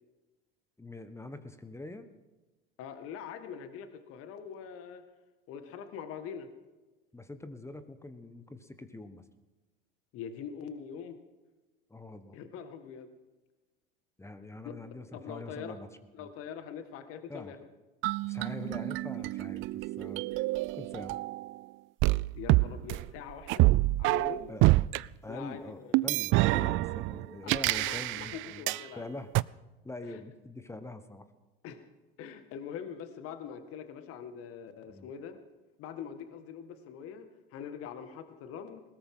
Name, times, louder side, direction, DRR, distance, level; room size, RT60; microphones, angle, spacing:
voice 1, 0.8-2.1 7.1-9.2 11.9-12.4 14.2-15.9 16.2-16.3 17.3-17.6 18.2-20.5 20.7-21.2 24.5-24.8 25.2-29.4 29.8-31.3 34.9-35.1, left 2 dB, 10° left, 10 dB, 1.3 m, -44 dB
voice 2, 2.8-5.0 5.5-6.5 10.1-11.2 12.3-13.1 14.8-15.8 16.1-17.6 22.3-23.7 24.0-24.6 25.3-26.1 27.4-29.1 30.1-30.2 31.6-31.8 32.2-35.4 35.8-38.8, left 7 dB, 50° left, 9 dB, 1.9 m, -43 dB
sound 1, 18.0-21.6 22.0-25.0 25.9-28.8 29.3-29.4, right 20 dB, 45° right, 0.4 m, -27 dB
20.5 x 18.0 x 3.8 m, 1.1 s
hypercardioid pair, 80°, 29 cm